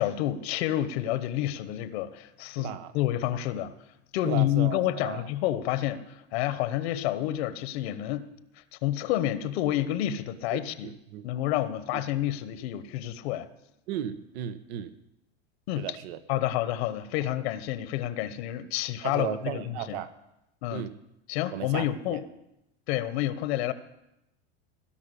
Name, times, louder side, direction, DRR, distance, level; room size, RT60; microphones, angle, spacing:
voice 1, 0.0-3.7 4.1-6.0 6.3-8.3 8.8-10.9 11.2-13.5 15.7-15.9 16.3-20.0 20.6-20.8 21.3-22.2 22.9-23.7, left 13 dB, 70° left, 13 dB, 1.1 m, -29 dB
voice 2, 2.6-2.9 4.2-5.3 10.5-11.3 11.9-12.0 13.9-14.9 15.8-16.5 19.0-20.1 20.7-21.0 21.5-22.2, right 10 dB, 75° right, 12 dB, 1.1 m, -36 dB
17.0 x 5.8 x 9.8 m, 0.87 s
supercardioid pair, 125°, 33 cm